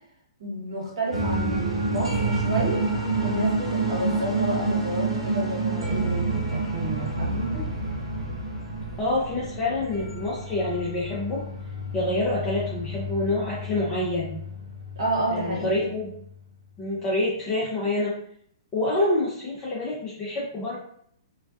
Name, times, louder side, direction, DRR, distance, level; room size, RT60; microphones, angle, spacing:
voice 1, 0.4-2.9 3.2-7.7 15.0-15.8, right 1 dB, 65° right, -2 dB, 1.0 m, -30 dB
sound 1, 1.1-16.2, right 2 dB, 80° right, 0.6 m, -29 dB
voice 2, 9.0-11.4 11.9-14.3 15.3-16.1 16.8-18.1 18.7-20.8, left 2 dB, 25° left, -6 dB, 0.6 m, -27 dB
2.3 x 2.2 x 2.4 m, 0.66 s
figure-of-eight pair, 115°, 3 cm